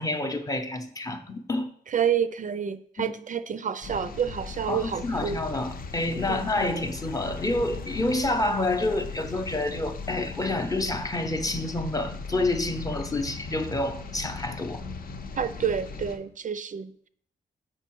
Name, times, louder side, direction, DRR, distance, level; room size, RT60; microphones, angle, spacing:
voice 1, 0.0-1.7 3.0-3.1 4.7-14.8, left 2 dB, 20° left, 7 dB, 0.6 m, -28 dB
voice 2, 1.9-5.4 6.3-6.5 15.4-17.1, right 8 dB, 50° right, 12 dB, 0.4 m, -29 dB
sound 1, 3.8-16.2, left 4 dB, 60° left, 0.7 m, -38 dB
8.0 x 5.5 x 4.5 m, 0.62 s
wide cardioid pair, 135°, 17 cm